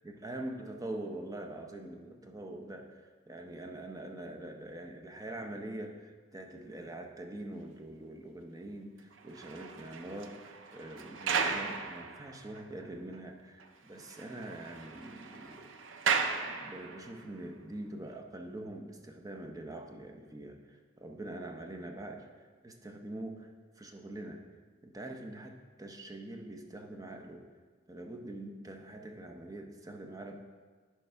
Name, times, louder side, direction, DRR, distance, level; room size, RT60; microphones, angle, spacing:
voice 1, 0.0-15.7 16.0-23.5 23.8-24.4 24.8-27.5 27.9-30.4, right 1 dB, 20° right, 3 dB, 0.6 m, -44 dB
sound 1, 9.1-12.8 13.1-13.2 13.6-13.7 14.0-17.2 17.9-18.1, right 5 dB, 75° right, 0.5 m, -36 dB
10.5 x 4.7 x 3.4 m, 1.5 s
head